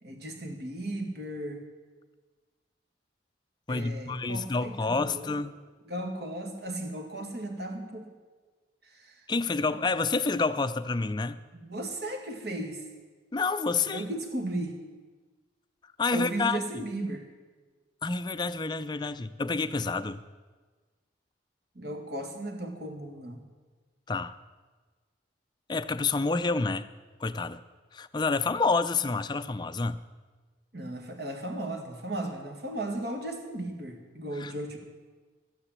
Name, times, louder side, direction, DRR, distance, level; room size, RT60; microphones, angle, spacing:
voice 1, 0.0-1.6 3.7-5.4 5.9-8.1 8.8-9.3 9.6-9.8 11.5-12.8 13.9-14.8 16.1-17.3 21.8-23.4 30.7-34.8, right 1 dB, 60° right, 4 dB, 1.9 m, -36 dB
voice 2, 3.7-5.6 9.3-11.4 13.3-14.0 16.0-16.8 18.0-20.2 24.1-24.4 25.7-26.9 27.2-27.6 27.9-30.0 34.4-34.5, left 4 dB, 25° left, 11 dB, 0.4 m, -28 dB
13.0 x 9.9 x 7.3 m, 1.4 s
head